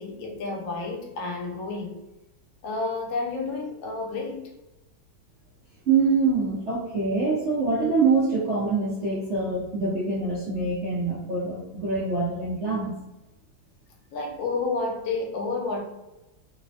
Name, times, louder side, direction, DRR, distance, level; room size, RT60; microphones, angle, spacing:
voice 1, 0.0-2.0 2.6-4.5 14.1-15.8, left 3 dB, 80° left, 1 dB, 1.3 m, -30 dB
voice 2, 5.9-12.9, right 4 dB, 65° right, -8 dB, 0.7 m, -25 dB
3.1 x 2.1 x 2.7 m, 1.0 s
omnidirectional pair, 2.0 m